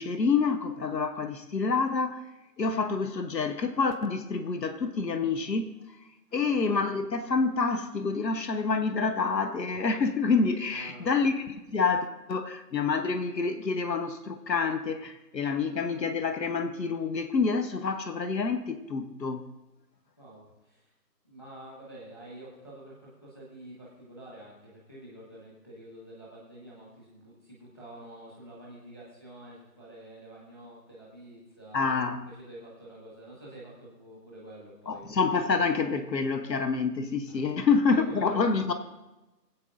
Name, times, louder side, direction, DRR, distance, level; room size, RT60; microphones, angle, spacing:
voice 1, 0.0-2.2 2.6-5.8 6.3-19.4 31.7-32.2 34.9-38.7, left 4 dB, 85° left, 1.1 m, -27 dB
voice 2, 10.7-11.3 20.2-20.9 21.2-31.9 32.2-35.1 37.3-37.5 37.9-38.7, right 1 dB, 15° left, 1.4 m, -48 dB
23.5 x 8.2 x 2.5 m
figure-of-eight pair, 175°, 49 cm